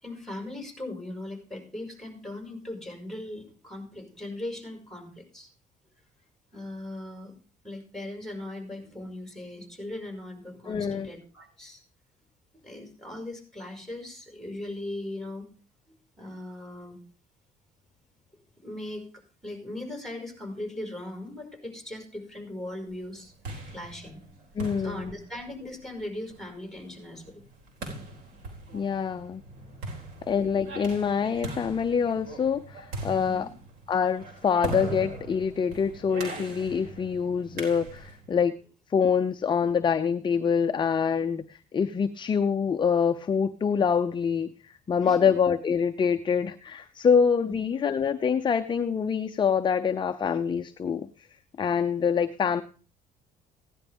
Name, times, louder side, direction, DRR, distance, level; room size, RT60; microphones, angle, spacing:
voice 1, 0.0-5.5 6.5-7.3 7.6-11.8 12.5-15.5 16.2-17.0 18.6-19.1 19.4-23.3 23.7-24.2 24.8-27.4 33.2-33.5 45.0-45.2 47.4-47.6, left 1 dB, ahead, 2 dB, 5.2 m, -39 dB
voice 2, 10.7-11.1 24.6-25.1 28.7-29.4 30.3-33.5 33.9-38.6 38.9-51.1 51.6-52.6, left 6 dB, 30° left, 10 dB, 0.6 m, -25 dB
sound 1, 23.1-38.3, right 2 dB, 70° right, 4.1 m, -40 dB
16.5 x 10.5 x 3.5 m, 0.39 s
cardioid pair, 110°, 17 cm